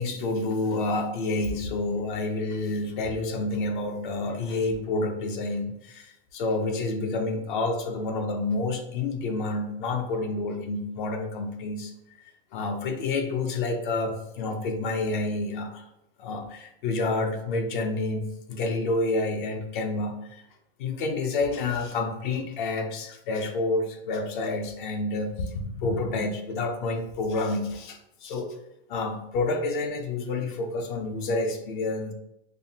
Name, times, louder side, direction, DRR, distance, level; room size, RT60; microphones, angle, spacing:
voice 1, 0.0-11.9 12.5-15.9 16.2-20.4 20.8-28.6 28.9-32.1, left 2 dB, 50° left, 5 dB, 0.5 m, -29 dB
5.4 x 2.1 x 2.7 m, 0.85 s
supercardioid pair, 170°, 32 cm